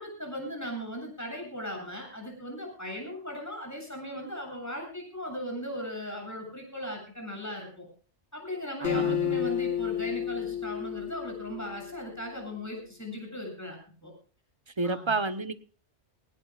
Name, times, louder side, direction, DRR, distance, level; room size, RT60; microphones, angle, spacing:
voice 1, 0.0-7.9 8.3-14.1 14.8-15.1, equal, 15° left, 7.7 m, -38 dB
Acoustic guitar, 8.8-12.3, left 10 dB, 75° left, 1.5 m, -31 dB
voice 2, 8.8-9.5 14.8-15.5, right 3 dB, 25° right, 0.9 m, -30 dB
19.5 x 19.5 x 2.4 m
omnidirectional pair, 1.2 m